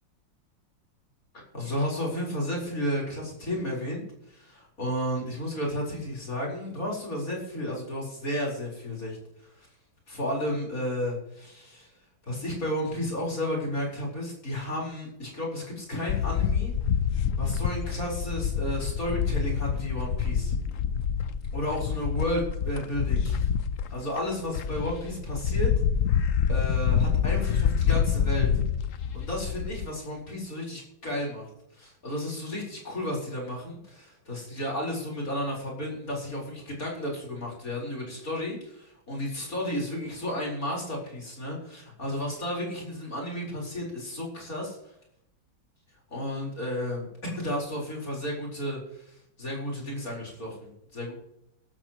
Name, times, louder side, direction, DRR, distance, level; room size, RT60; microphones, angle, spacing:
voice 1, 1.5-4.0 4.3-9.2 9.6-9.7 10.1-11.9 12.3-16.7 17.4-20.5 21.5-23.5 23.9-25.7 26.5-28.5 29.1-31.5 31.8-44.8 46.1-49.1 49.4-51.1, left 1 dB, 45° left, -2 dB, 4.9 m, -32 dB
sound 1, 16.1-29.9, left 7 dB, 65° left, 0.8 m, -27 dB
17.0 x 13.5 x 3.1 m, 0.77 s
omnidirectional pair, 2.2 m